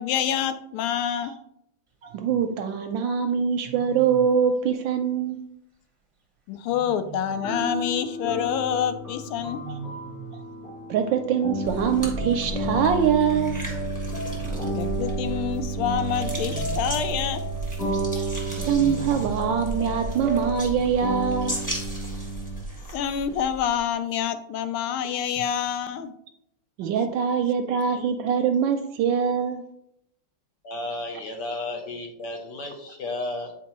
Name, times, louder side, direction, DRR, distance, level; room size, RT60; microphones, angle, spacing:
voice 1, 0.0-1.3 6.5-9.6 14.7-17.4 22.9-26.1, left 9 dB, 85° left, 10 dB, 1.4 m, -27 dB
Wild animals, 2.0-2.4 3.6-4.3 6.7-7.6 9.4-10.5 11.9-12.9 14.4-15.5 16.3-17.2 18.5-19.5, right 4 dB, 25° right, 0.6 m, -41 dB
voice 2, 2.0-5.4 9.7-9.8 10.9-13.6 18.1-18.3 18.6-21.6 25.1-25.2 26.8-29.6, right 7 dB, 75° right, 7 dB, 1.1 m, -24 dB
sound 1, 7.3-22.6, right 2 dB, 40° left, 2.0 m, -32 dB
sound 2, 11.7-23.9, right 1 dB, 5° left, 1.3 m, -35 dB
voice 3, 30.6-33.5, left 2 dB, 65° left, 4 dB, 1.3 m, -33 dB
8.2 x 4.5 x 3.0 m, 0.76 s
omnidirectional pair, 2.3 m